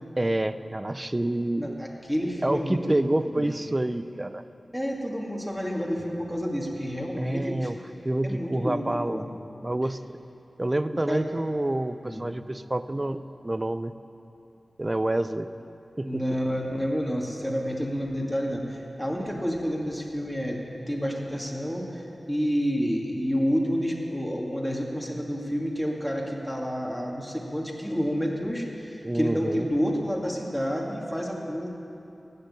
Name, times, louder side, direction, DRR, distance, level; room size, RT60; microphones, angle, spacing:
voice 1, 0.2-1.8 2.4-4.4 7.2-7.8 8.0-9.2 9.6-10.2 10.6-13.9 14.8-15.5 16.0-16.2 29.0-29.7, right 1 dB, 25° right, 12 dB, 0.5 m, -28 dB
voice 2, 1.6-3.5 4.7-7.7 8.2-9.3 11.1-11.3 12.0-12.2 16.0-20.6 20.9-31.7, equal, ahead, -2 dB, 2.4 m, -29 dB
15.5 x 6.6 x 9.8 m, 2.8 s
cardioid pair, 55°, 0 cm